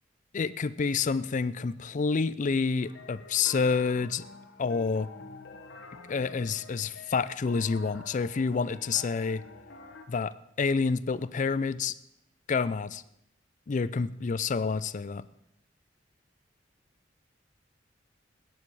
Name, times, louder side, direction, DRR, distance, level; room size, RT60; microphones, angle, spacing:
voice 1, 0.3-4.2 4.6-5.1 6.1-9.4 10.1-12.0 12.5-13.0 13.7-15.3, left 5 dB, 45° left, 16 dB, 0.4 m, -28 dB
sound 1, 2.8-10.1, left 4 dB, 70° left, 1.2 m, -48 dB
17.0 x 9.9 x 4.7 m, 0.79 s
head